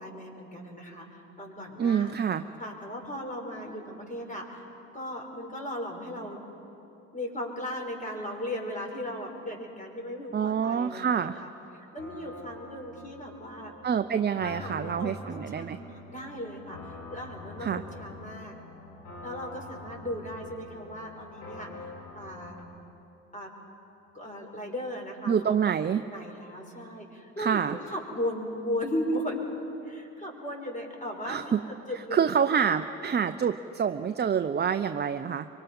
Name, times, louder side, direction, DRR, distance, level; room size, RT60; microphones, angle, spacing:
voice 1, 0.0-2.2 2.6-4.7 4.9-6.4 7.1-13.7 14.4-15.2 15.5-18.6 19.2-22.6 23.3-23.5 24.1-25.6 26.1-29.4 29.8-31.5 31.9-32.3, equal, 20° left, 1 dB, 5.5 m, -37 dB
voice 2, 1.8-2.4 10.3-11.4 13.8-15.8 17.6-17.8 25.3-26.0 27.4-27.8 31.2-31.6 32.1-35.5, right 7 dB, 25° right, 9 dB, 0.7 m, -27 dB
sound 1, 12.0-22.6, left 3 dB, 70° left, 4.3 m, -45 dB
24.5 x 24.5 x 5.6 m, 2.9 s
hypercardioid pair, 65°, 38 cm